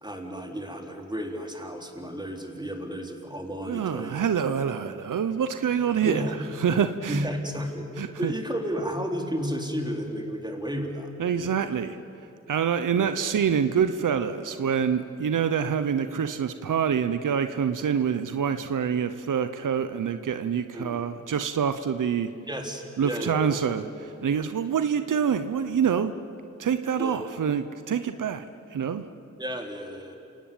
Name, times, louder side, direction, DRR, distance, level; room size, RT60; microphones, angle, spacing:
voice 1, 0.0-4.2 6.0-6.3 7.1-7.9 8.2-11.6 13.0-13.1 20.7-21.0 22.5-23.6 27.0-27.4 29.4-30.2, equal, 15° right, 2 dB, 3.9 m, -32 dB
voice 2, 3.6-7.3 8.0-8.3 11.2-12.0 12.5-22.3 23.0-26.1 26.6-28.4 28.7-29.1, right 7 dB, 85° right, 10 dB, 0.9 m, -26 dB
28.5 x 18.0 x 9.0 m, 2.6 s
cardioid pair, 50°, 31 cm